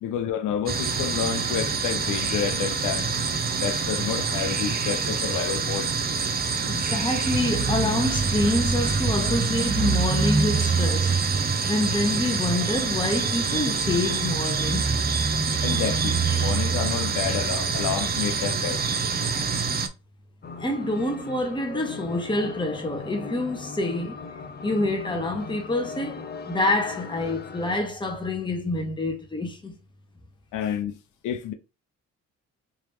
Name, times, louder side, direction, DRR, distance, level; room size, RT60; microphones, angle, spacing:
voice 1, 0.0-3.1 3.6-5.9 15.6-18.8 30.5-30.9 31.2-31.5, left 9 dB, 85° left, 0.6 m, -29 dB
sound 1, 0.7-19.9, right 5 dB, 30° right, 0.6 m, -25 dB
voice 2, 6.7-11.2 11.6-14.9 15.6-15.9 20.6-24.2 24.6-26.2 26.5-29.8, left 2 dB, 15° left, 1.3 m, -27 dB
sound 2, 20.4-27.8, left 4 dB, 35° left, 0.6 m, -39 dB
3.6 x 3.0 x 3.1 m
cardioid pair, 90°, 30 cm